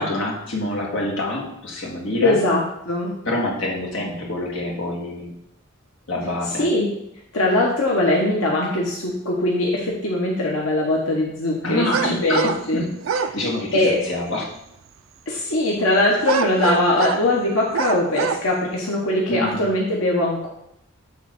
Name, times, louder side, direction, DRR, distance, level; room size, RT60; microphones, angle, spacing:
voice 1, 0.0-2.4 3.2-5.4 6.1-6.7 11.6-14.5 19.3-19.7, left 1 dB, 65° left, -2 dB, 1.7 m, -26 dB
voice 2, 2.2-3.1 6.6-6.9 7.3-11.9 12.2-12.8 13.7-14.0 15.3-20.5, left 1 dB, 85° left, -3 dB, 1.1 m, -21 dB
sound 1, 11.9-12.6 13.0-13.3 16.2-17.3 17.7-18.4, right 7 dB, 70° right, 0.4 m, -24 dB
6.5 x 3.6 x 6.0 m, 0.78 s
head